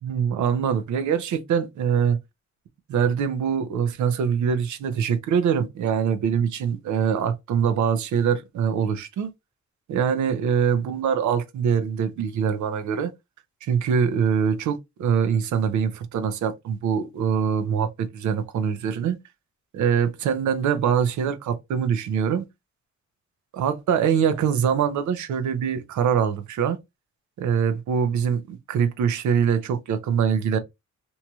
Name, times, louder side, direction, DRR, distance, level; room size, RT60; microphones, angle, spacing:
voice 1, 0.0-2.2 2.9-9.3 9.9-13.1 13.6-19.2 19.7-22.4 23.5-26.8 27.4-30.6, right 7 dB, 80° right, 0.7 m, -23 dB
3.0 x 2.8 x 2.3 m
cardioid pair, 135°, 29 cm